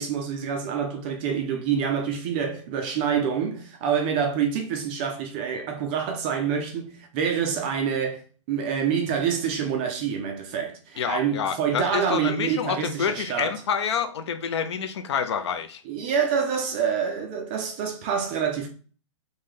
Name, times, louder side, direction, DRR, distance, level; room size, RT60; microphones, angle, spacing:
voice 1, 0.0-8.2 8.5-13.6 15.9-18.7, right 7 dB, 20° right, 0.3 m, -27 dB
voice 2, 11.0-15.8, left 7 dB, 55° left, 0.5 m, -28 dB
3.2 x 2.7 x 3.7 m
hypercardioid pair, 165°, 17 cm